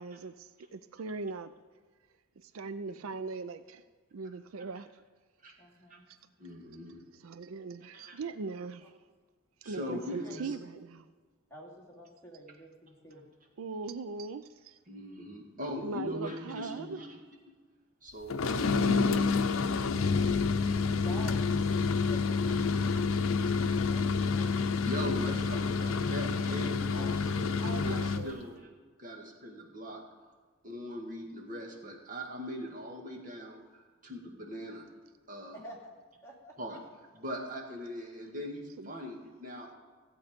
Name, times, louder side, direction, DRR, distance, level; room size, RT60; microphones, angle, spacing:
voice 1, 0.0-1.5 2.5-3.8 4.1-4.9 7.2-8.9 9.7-11.0 13.6-14.8 15.8-17.0 20.9-21.5 27.6-28.4 38.8-38.9, right 4 dB, 85° right, 13 dB, 0.5 m, -40 dB
voice 2, 5.6-6.1 9.9-10.3 11.5-13.2 21.0-21.4 22.0-24.6 27.0-27.3 35.5-35.9 36.2-36.5, right 1 dB, 15° left, -4 dB, 2.6 m, -49 dB
voice 3, 6.4-7.0 7.9-8.2 9.6-10.5 14.9-17.2 18.0-20.0 24.8-27.5 27.8-28.7 29.0-30.0 30.6-34.9 35.3-35.6 36.6-36.8 37.1-39.7, equal, 40° right, 1 dB, 1.9 m, -41 dB
sound 1, 18.3-28.3, left 4 dB, 80° left, 0.6 m, -28 dB
15.5 x 8.2 x 5.1 m, 1.5 s
head